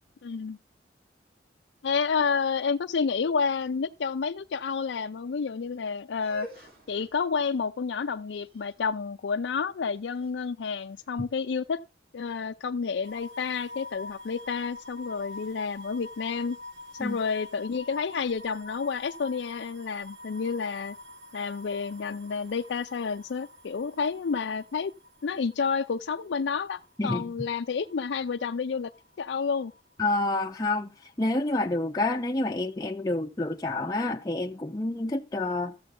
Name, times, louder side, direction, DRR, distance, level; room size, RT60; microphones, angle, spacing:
voice 1, 0.2-0.6 1.8-11.8 12.1-16.6 16.9-21.0 21.3-24.9 25.2-28.9 29.2-29.7, left 5 dB, 80° left, 0.4 m, -30 dB
sound 1, 6.1-12.0, equal, 55° right, 3.4 m, -50 dB
sound 2, 13.0-29.9 30.2-31.2, left 2 dB, 80° right, 1.2 m, -47 dB
voice 2, 30.0-35.7, left 2 dB, 20° left, 0.5 m, -28 dB
13.5 x 7.9 x 3.7 m
head